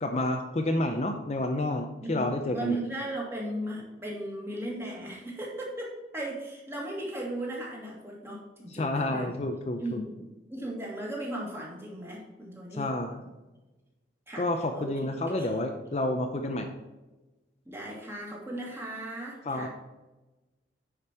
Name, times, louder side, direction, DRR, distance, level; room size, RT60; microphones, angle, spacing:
voice 1, 0.0-2.8 8.7-10.0 12.7-13.2 14.4-16.7 19.5-19.7, left 1 dB, 35° left, 4 dB, 0.5 m, -29 dB
voice 2, 2.0-9.4 9.8-12.9 14.3-14.5 14.7-15.6 17.7-19.7, right 1 dB, 15° right, -3 dB, 1.9 m, -37 dB
9.6 x 5.1 x 4.4 m, 1.1 s
head